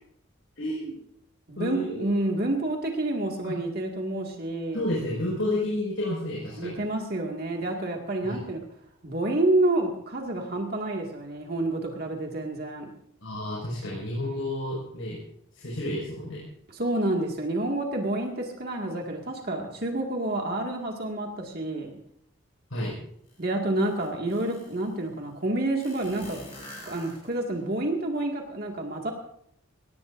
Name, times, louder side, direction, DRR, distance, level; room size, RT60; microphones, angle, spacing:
voice 1, 0.6-1.0 1.6-2.1 3.4-3.6 4.7-6.8 8.2-8.4 13.2-15.2 15.5-16.4 22.7-23.0, left 1 dB, 70° left, -4 dB, 5.4 m, -31 dB
voice 2, 1.5-4.9 6.6-8.6 9.0-12.9 16.7-22.0 23.4-26.4 26.9-29.1, right 2 dB, 50° right, 1 dB, 2.0 m, -29 dB
sound 1, 23.3-23.4 23.8-24.9 25.8-27.6, left 1 dB, 30° left, 7.2 m, -45 dB
22.5 x 17.5 x 2.6 m, 0.70 s
head